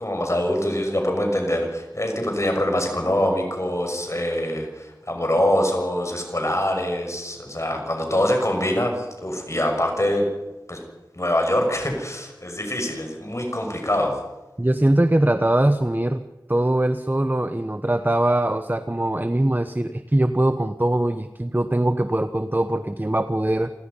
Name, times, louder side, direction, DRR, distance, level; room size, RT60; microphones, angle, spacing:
voice 1, 0.0-10.3 10.7-10.8 11.2-14.2, left 1 dB, 40° left, 2 dB, 6.4 m, -24 dB
voice 2, 14.6-23.7, right 1 dB, 25° right, 10 dB, 1.0 m, -22 dB
28.0 x 17.0 x 5.6 m, 1.1 s
wide cardioid pair, 40°, 8 cm